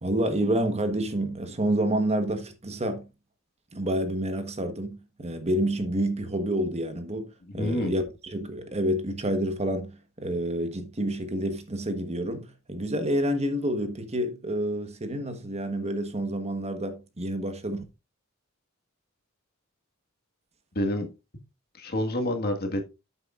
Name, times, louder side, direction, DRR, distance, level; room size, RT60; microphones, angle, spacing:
voice 1, 0.0-3.0 3.7-17.8, right 1 dB, 30° right, 1.3 m, -28 dB
voice 2, 7.6-7.9 20.8-21.1 21.8-22.8, left 1 dB, 50° left, 1.8 m, -27 dB
9.8 x 8.2 x 2.5 m
head